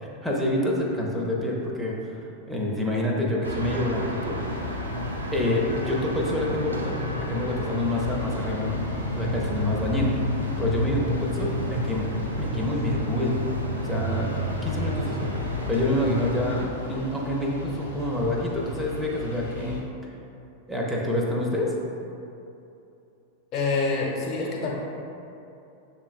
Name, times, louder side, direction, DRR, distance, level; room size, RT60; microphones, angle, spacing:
voice 1, 0.2-2.2 2.5-4.4 5.3-7.0 7.3-8.8 9.1-10.2 10.6-12.1 12.4-13.4 13.8-14.3 14.6-15.3 15.7-19.8 20.7-21.7, left 1 dB, 5° right, -2 dB, 0.6 m, -27 dB
sound 1, 3.4-16.6, left 1 dB, 80° right, 0.5 m, -30 dB
sound 2, 4.2-19.8, left 3 dB, 75° left, 0.8 m, -38 dB
voice 2, 23.5-24.7, left 3 dB, 40° left, -3 dB, 0.9 m, -26 dB
6.9 x 3.0 x 2.5 m, 2.8 s
figure-of-eight pair, 90°, 0 cm